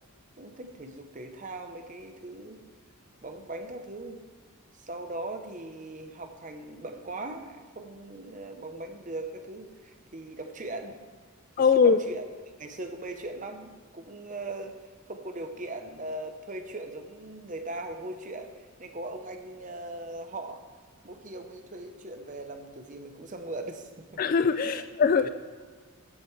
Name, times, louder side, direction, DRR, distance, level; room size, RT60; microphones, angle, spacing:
voice 1, 0.4-2.6 3.2-4.2 4.7-11.0 11.6-12.2 12.6-14.8 15.0-20.6 21.0-24.2 24.6-24.8 25.2-25.3, right 2 dB, 35° right, 6 dB, 0.8 m, -39 dB
voice 2, 11.6-12.0 24.2-25.3, left 5 dB, 40° left, 12 dB, 0.3 m, -21 dB
14.0 x 7.8 x 3.3 m, 1.5 s
head